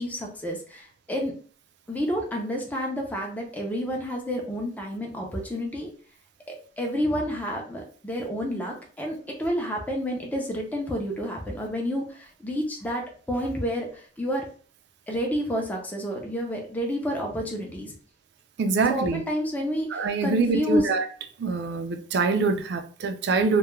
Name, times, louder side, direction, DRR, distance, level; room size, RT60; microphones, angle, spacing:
voice 1, 0.0-1.3 1.9-5.9 6.5-14.4 15.1-17.9 18.9-20.9, equal, 10° left, 0.4 m, -30 dB
voice 2, 18.6-19.2 19.9-21.0 21.4-23.6, right 4 dB, 60° right, 0.3 m, -24 dB
2.2 x 2.1 x 3.0 m
head